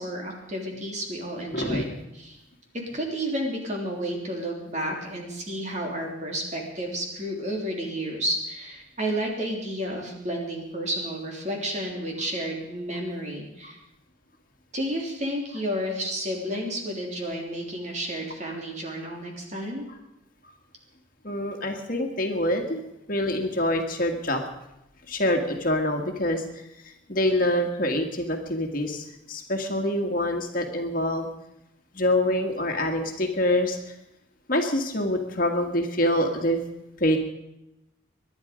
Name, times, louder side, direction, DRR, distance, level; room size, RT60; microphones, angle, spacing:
voice 1, 0.0-2.4 2.9-13.8 14.7-19.9, right 1 dB, 35° right, 0 dB, 3.3 m, -31 dB
voice 2, 1.5-1.9 13.6-13.7 21.2-22.8 23.1-24.4 25.1-26.4 27.1-31.3 32.0-33.8 34.5-36.6 37.0-37.2, left 1 dB, 45° left, 3 dB, 1.8 m, -25 dB
23.5 x 11.0 x 5.2 m, 0.88 s
head